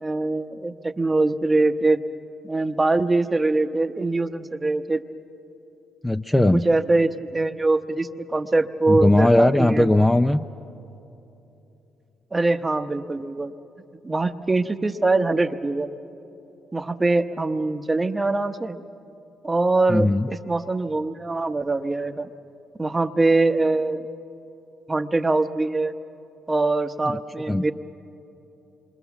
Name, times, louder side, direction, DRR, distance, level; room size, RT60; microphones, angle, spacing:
voice 1, 0.0-2.0 2.4-5.0 6.5-9.9 12.3-13.5 14.0-15.9 16.7-18.8 19.4-22.3 22.8-24.0 24.9-25.9 26.5-27.7, right 2 dB, 20° right, 8 dB, 0.9 m, -23 dB
voice 2, 6.0-6.6 8.9-10.4 19.9-20.3 27.5-27.6, left 1 dB, 10° left, 8 dB, 0.5 m, -18 dB
27.0 x 23.0 x 7.2 m, 2.9 s
cardioid pair, 90°, 0 cm